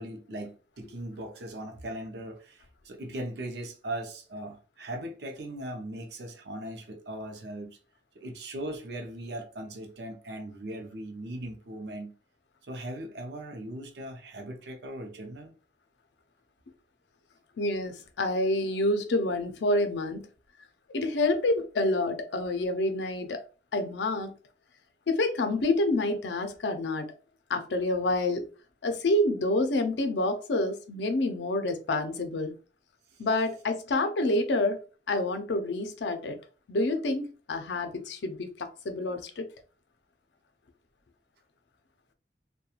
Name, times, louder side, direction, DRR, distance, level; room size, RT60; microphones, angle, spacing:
voice 1, 0.0-7.8 8.1-12.1 12.7-15.5 33.1-33.2, right 1 dB, 70° right, 0.5 m, -39 dB
voice 2, 17.6-20.2 20.9-23.4 23.7-24.3 25.1-27.1 27.5-28.5 28.8-32.5 33.2-34.8 35.1-36.4 36.7-39.5, left 2 dB, 80° left, 0.5 m, -28 dB
2.9 x 2.2 x 2.3 m
head